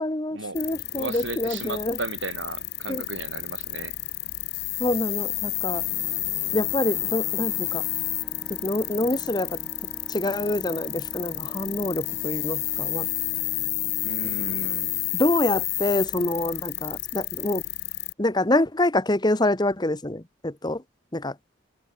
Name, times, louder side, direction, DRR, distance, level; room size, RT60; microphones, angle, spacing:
voice 1, 0.0-2.0 2.9-3.0 4.8-5.8 6.5-7.9 8.5-9.6 10.1-13.1 15.1-17.6 18.2-20.8 21.1-21.4, left 1 dB, 20° left, 1.3 m, -26 dB
sound 1, 0.5-18.1, left 18 dB, 55° left, 1.0 m, -30 dB
voice 2, 0.9-4.0 14.0-15.0, right 3 dB, 80° right, 3.5 m, -35 dB
sound 2, 5.3-16.6, equal, 5° left, 4.6 m, -46 dB
open air
head